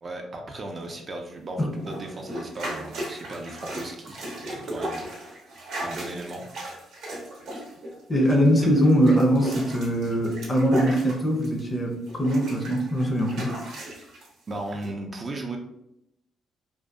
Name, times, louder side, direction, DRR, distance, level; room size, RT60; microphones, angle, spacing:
voice 1, 0.0-5.4 5.8-6.5 8.6-8.7 14.5-15.6, right 2 dB, 35° right, 2 dB, 0.4 m, -36 dB
sound 1, 1.8-11.7 12.1-14.3 14.8-14.9, right 1 dB, 75° right, 0.7 m, -36 dB
voice 2, 8.1-13.5, equal, 30° left, 2 dB, 0.5 m, -22 dB
2.6 x 2.3 x 2.3 m, 0.80 s
cardioid pair, 90°, 0 cm